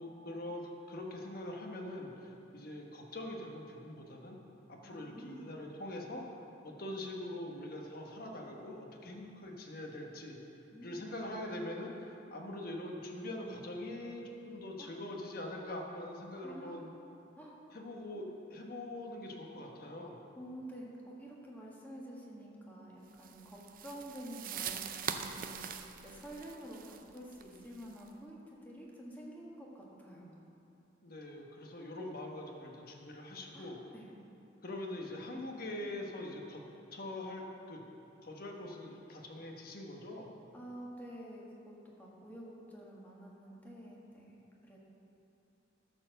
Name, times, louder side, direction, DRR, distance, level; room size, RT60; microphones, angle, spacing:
voice 1, 0.0-4.4 4.7-6.2 6.6-10.4 10.8-16.9 17.7-18.2 18.5-20.2 31.0-33.8 34.6-36.6 36.9-37.8 38.2-40.3, left 1 dB, 50° left, 1 dB, 1.1 m, -43 dB
voice 2, 4.8-5.6 10.7-11.0 14.8-14.9 16.4-16.9 17.4-17.6 20.3-30.3 33.5-34.1 40.5-44.8, right 1 dB, 10° left, -4 dB, 1.5 m, -49 dB
sound 1, 23.2-28.1, right 7 dB, 45° right, 0.5 m, -43 dB
12.5 x 4.5 x 6.4 m, 2.8 s
head